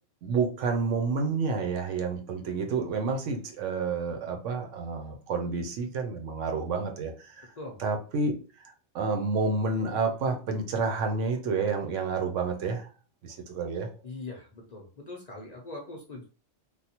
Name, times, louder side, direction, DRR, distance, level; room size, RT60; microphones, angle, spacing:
voice 1, 0.2-7.5 7.8-8.3 8.9-12.9 13.2-13.9, right 4 dB, 75° right, 5 dB, 1.0 m, -29 dB
voice 2, 14.0-16.2, left 2 dB, 45° left, -1 dB, 0.6 m, -41 dB
3.4 x 2.3 x 2.8 m, 0.37 s
omnidirectional pair, 1.3 m